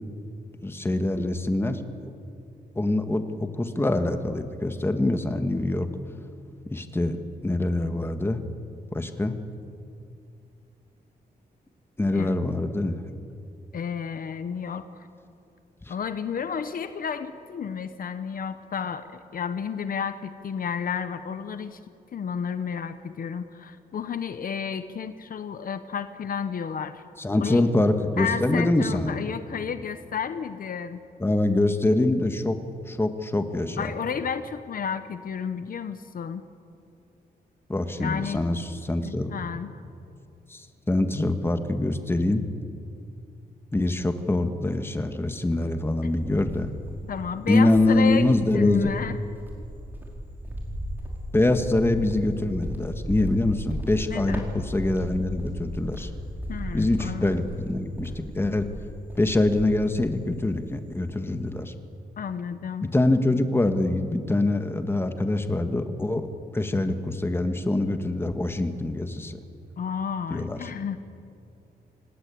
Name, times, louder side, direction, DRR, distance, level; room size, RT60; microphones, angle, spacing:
voice 1, 0.6-1.8 2.7-5.9 6.7-8.4 8.9-9.4 12.0-13.0 15.9-16.0 27.2-29.2 31.2-32.6 32.9-33.9 37.7-39.3 40.5-42.4 43.7-46.7 47.5-48.9 51.3-56.1 56.7-58.7 59.2-61.7 62.8-66.2 66.5-69.4 70.3-70.7, left 2 dB, 15° left, 7 dB, 1.6 m, -24 dB
voice 2, 13.7-15.1 15.9-21.8 22.1-27.0 27.4-27.6 28.2-31.0 33.8-36.4 38.0-38.4 39.0-39.7 47.1-49.2 54.1-54.4 56.5-57.4 62.2-62.9 69.8-71.0, left 7 dB, 60° left, 11 dB, 1.0 m, -32 dB
Cricket, 45.8-47.2 47.7-60.7 61.0-61.5, equal, 10° right, 4.7 m, -36 dB
27.5 x 19.0 x 8.5 m, 2.6 s
wide cardioid pair, 125°, 16 cm